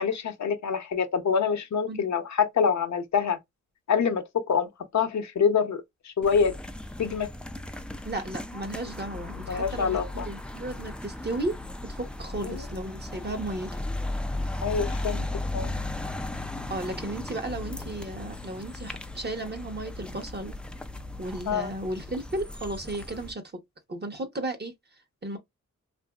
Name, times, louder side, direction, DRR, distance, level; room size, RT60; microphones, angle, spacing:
voice 1, 0.0-3.4 3.9-4.7 4.9-6.5 7.0-7.3 9.5-10.3 12.4-12.6 14.6-15.3 15.5-15.7 21.5-21.7, left 6 dB, 65° left, 0.7 m, -26 dB
sound 1, 6.2-23.3, left 2 dB, 5° left, 0.3 m, -36 dB
voice 2, 8.0-11.5 11.8-13.8 16.7-20.5 21.2-23.6 23.9-24.7 25.2-25.4, right 2 dB, 35° right, 0.8 m, -34 dB
2.7 x 2.5 x 2.3 m
cardioid pair, 65°, 30 cm